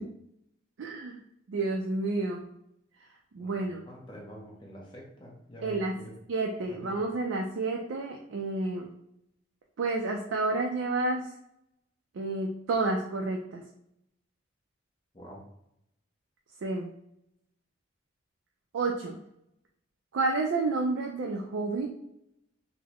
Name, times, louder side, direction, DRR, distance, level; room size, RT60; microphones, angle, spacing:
voice 1, 0.8-1.2 1.5-2.4 3.3-3.8 5.6-5.9 6.3-8.9 9.8-11.3 12.2-13.6 16.6-16.9 18.7-19.2 20.1-21.9, right 3 dB, 80° right, 1 dB, 0.4 m, -30 dB
voice 2, 3.4-6.1 6.7-7.1 15.1-15.4, equal, 25° left, -2 dB, 0.7 m, -47 dB
3.8 x 2.0 x 2.9 m, 0.78 s
head